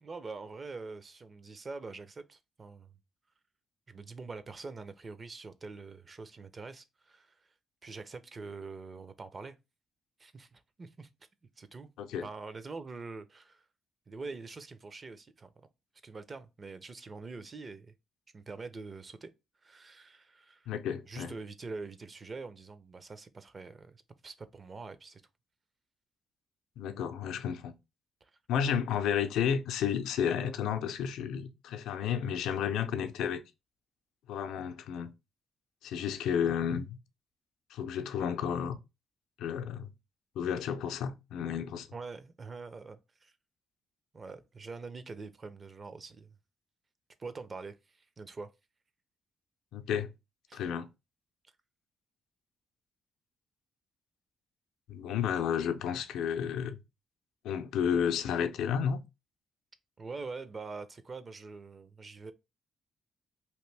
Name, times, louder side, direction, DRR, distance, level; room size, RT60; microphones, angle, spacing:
voice 1, 0.0-3.0 3.9-7.5 7.8-9.6 10.2-11.1 11.6-11.9 12.2-13.6 14.1-15.5 16.0-17.9 18.3-19.3 19.6-20.7 21.1-25.2 28.2-28.3 41.9-43.3 44.1-46.4 47.2-48.5 50.5-50.7 60.0-62.3, right 4 dB, 35° right, 0.5 m, -44 dB
voice 2, 20.7-21.3 26.8-27.7 28.5-33.4 34.3-35.1 35.8-37.0 37.7-38.8 39.4-39.9 40.4-41.9 49.7-50.1 50.5-50.9 54.9-56.8 57.4-59.0, left 8 dB, 85° left, 0.4 m, -32 dB
2.9 x 2.6 x 3.3 m
cardioid pair, 90°, 0 cm